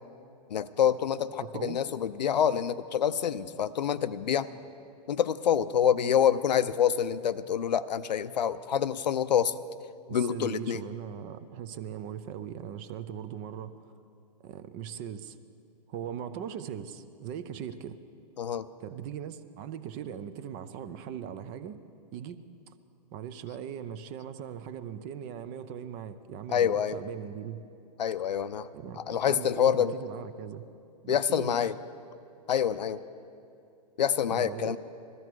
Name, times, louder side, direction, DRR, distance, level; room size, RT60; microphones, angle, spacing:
voice 1, 0.5-4.5 5.1-9.6 10.1-10.8 18.4-18.7 26.5-27.0 28.0-28.7 29.0-29.9 31.1-31.8 32.5-33.0 34.0-34.8, left 8 dB, 80° left, 13 dB, 0.6 m, -27 dB
voice 2, 1.4-1.8 10.1-13.9 14.4-15.4 15.9-18.0 18.8-21.8 22.1-22.7 23.1-27.6 28.7-30.6 31.0-31.6 34.3-34.8, right 9 dB, 30° right, 12 dB, 0.6 m, -40 dB
20.0 x 14.0 x 4.7 m, 2.6 s
hypercardioid pair, 140°, 21 cm